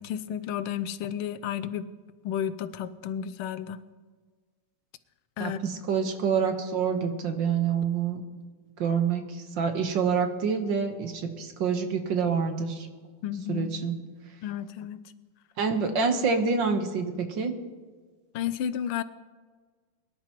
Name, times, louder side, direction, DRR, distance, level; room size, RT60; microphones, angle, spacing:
voice 1, 0.0-1.9 2.2-3.8 5.4-5.6 13.2-13.8 14.4-15.0 18.3-19.0, left 9 dB, 90° left, 13 dB, 1.5 m, -32 dB
voice 2, 5.4-8.2 8.8-12.9 13.5-14.0 15.6-17.5, right 6 dB, 65° right, 6 dB, 1.8 m, -27 dB
23.0 x 11.5 x 3.0 m, 1.4 s
omnidirectional pair, 2.3 m